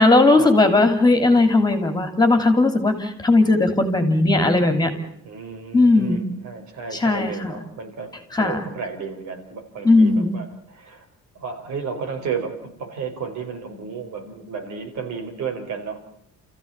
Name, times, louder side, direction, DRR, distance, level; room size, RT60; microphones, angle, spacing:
voice 1, 0.0-4.9 5.7-6.2 6.9-7.5 8.3-8.6 9.8-10.3, left 2 dB, 15° left, 6 dB, 2.9 m, -17 dB
voice 2, 4.7-8.1 8.4-11.0 11.3-16.0, right 5 dB, 75° right, 4 dB, 5.4 m, -33 dB
30.0 x 15.5 x 8.8 m, 0.71 s
cardioid pair, 150°, 29 cm